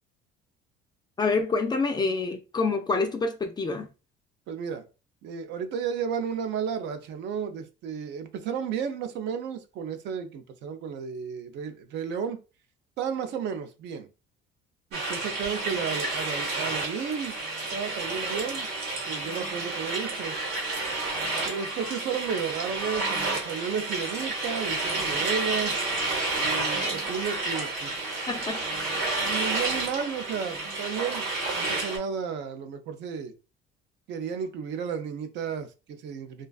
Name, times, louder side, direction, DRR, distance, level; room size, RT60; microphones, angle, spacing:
voice 1, 1.2-3.9 28.3-28.9, left 3 dB, 20° left, 0.4 m, -27 dB
voice 2, 4.5-4.8 5.2-12.4 13.0-14.1 14.9-17.4 17.7-18.7 19.1-20.4 21.5-25.8 26.3-28.1 29.1-31.2 31.5-33.3 34.1-36.5, right 7 dB, 60° right, 0.5 m, -33 dB
sound 1, 14.9-32.0, right 2 dB, 85° right, 1.0 m, -30 dB
2.4 x 2.3 x 2.3 m
cardioid pair, 120°, 20 cm